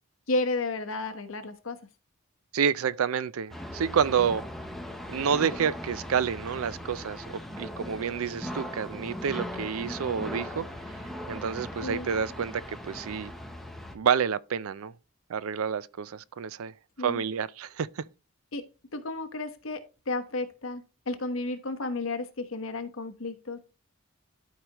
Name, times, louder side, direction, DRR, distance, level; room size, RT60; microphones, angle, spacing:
voice 1, 0.3-1.8 11.8-12.1 17.0-17.2 18.5-18.6 18.9-23.6, left 2 dB, 70° left, 1.1 m, -32 dB
voice 2, 2.5-4.5 5.1-10.7 11.3-13.3 13.9-14.9 15.3-16.7 17.0-18.0, right 7 dB, 80° right, 0.4 m, -29 dB
sound 1, 3.5-14.0, left 1 dB, ahead, 0.8 m, -39 dB
12.5 x 4.8 x 3.0 m
head